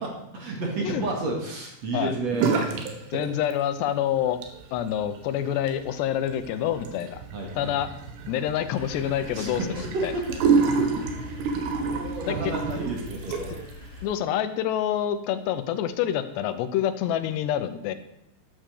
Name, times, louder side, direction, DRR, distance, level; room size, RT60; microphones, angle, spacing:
voice 1, 0.3-3.2 7.3-7.8 9.3-10.3 10.8-10.9 11.8-13.6, right 2 dB, 45° right, 0 dB, 2.7 m, -31 dB
sound 1, 2.3-2.9 3.2-3.9 4.3-13.7, right 5 dB, 80° right, 3.6 m, -29 dB
voice 2, 3.1-4.4 4.7-7.2 7.6-7.9 8.3-10.1 12.2-12.5 14.0-17.9, left 10 dB, 85° left, 11 dB, 3.0 m, -27 dB
sound 2, 8.7-14.1, left 2 dB, 30° right, 7.3 m, -41 dB
13.0 x 9.4 x 6.6 m, 0.81 s
omnidirectional pair, 4.9 m